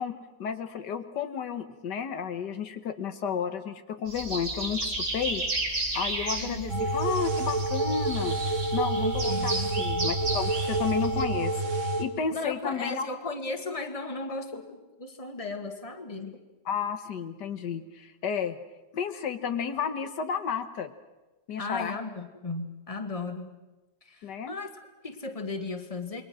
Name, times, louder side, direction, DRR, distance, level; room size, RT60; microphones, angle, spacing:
voice 1, 0.0-5.4 5.9-8.4 8.7-13.1 16.7-18.6 18.9-20.9 21.5-22.0 24.2-24.5, left 7 dB, 80° left, 9 dB, 1.8 m, -32 dB
sound 1, 4.1-11.2, right 2 dB, 80° right, 4.2 m, -33 dB
voice 2, 6.4-6.8 9.0-9.7 12.3-16.4 21.6-23.5 24.0-26.2, left 3 dB, 20° left, 6 dB, 1.9 m, -36 dB
sound 2, 6.7-12.0, right 2 dB, 45° right, 2.1 m, -28 dB
28.0 x 22.0 x 6.2 m, 1.1 s
omnidirectional pair, 1.8 m